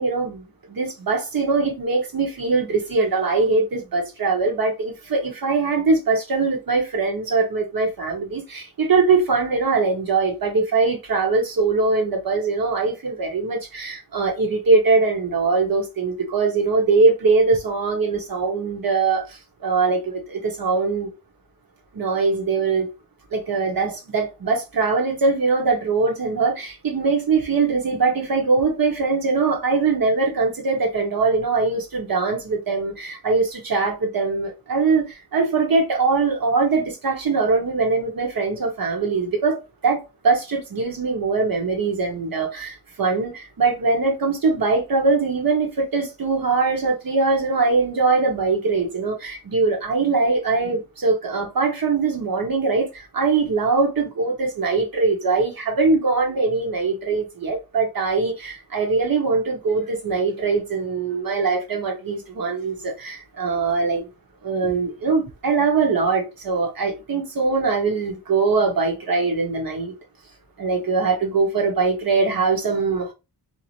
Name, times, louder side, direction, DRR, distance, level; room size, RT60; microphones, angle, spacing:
voice 1, 0.0-21.1 21.9-22.9 23.3-64.1 64.4-69.9 70.6-73.1, right 4 dB, 55° right, 1.0 m, -22 dB
2.8 x 2.1 x 2.8 m
wide cardioid pair, 90°, 42 cm